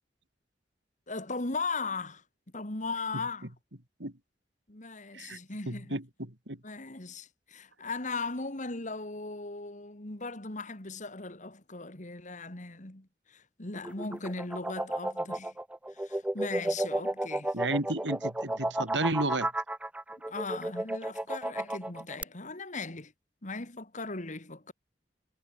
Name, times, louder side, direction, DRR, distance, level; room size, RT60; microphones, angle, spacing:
voice 1, 1.1-2.2 2.5-3.5 4.7-6.0 6.6-15.6 15.9-17.6 20.3-23.1 23.4-24.7, left 3 dB, 45° left, 2.4 m, -38 dB
voice 2, 5.7-6.0 6.5-6.6 17.5-19.5, right 2 dB, 85° right, 4.7 m, -32 dB
sound 1, 13.7-22.2, right 1 dB, 5° right, 0.4 m, -32 dB
head